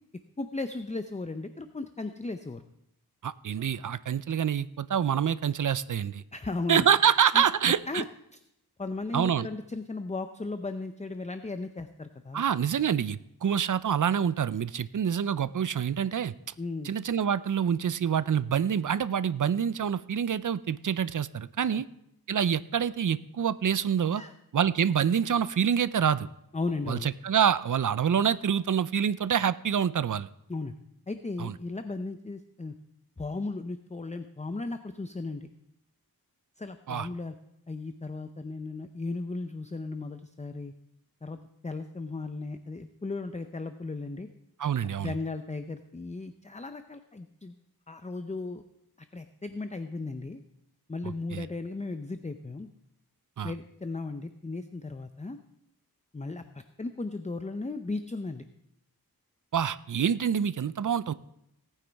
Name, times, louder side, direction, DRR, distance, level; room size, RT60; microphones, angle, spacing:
voice 1, 0.4-2.6 6.3-7.4 7.9-8.1 8.8-12.4 16.6-16.9 21.7-21.8 24.1-24.3 26.5-27.1 30.5-30.7 31.1-32.7 33.2-35.5 36.6-37.3 37.7-40.7 41.2-41.4 41.6-44.3 45.0-47.5 47.9-48.6 49.1-50.4 50.9-52.7 53.4-55.4 56.1-58.5, left 3 dB, 20° left, 9 dB, 0.5 m, -36 dB
voice 2, 3.2-6.2 6.7-8.0 9.1-9.5 12.3-16.3 16.8-21.8 22.3-24.2 24.5-26.3 26.9-30.3 31.4-31.5 36.9-37.1 44.6-45.1 51.3-51.5 53.4-53.5 59.5-61.1, right 8 dB, 55° right, 16 dB, 0.5 m, -26 dB
18.0 x 9.3 x 3.4 m, 0.80 s
wide cardioid pair, 55°, 37 cm